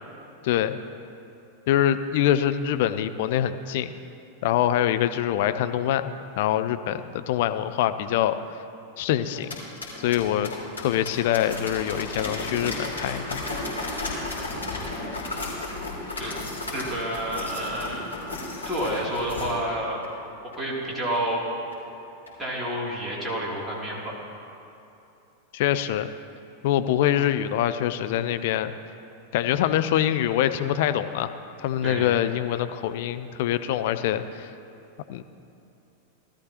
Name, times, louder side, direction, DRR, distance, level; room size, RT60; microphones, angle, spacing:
voice 1, 0.4-0.8 1.7-3.9 4.4-8.4 9.0-9.5 10.0-10.5 10.8-13.4 25.5-26.1 26.6-28.7 29.3-34.5 35.1-35.2, left 11 dB, 50° left, 10 dB, 0.5 m, -24 dB
sound 1, 9.3-19.5 20.0-20.1 20.5-20.6 21.1-21.2 21.7-21.8 22.3-22.4, left 2 dB, 75° left, 3.1 m, -34 dB
voice 2, 16.7-18.1 18.6-20.0 20.4-21.4 22.4-24.2 31.8-32.1, right 1 dB, 5° right, -7 dB, 3.0 m, -30 dB
17.0 x 13.0 x 3.0 m, 2.9 s
figure-of-eight pair, 90°, 0 cm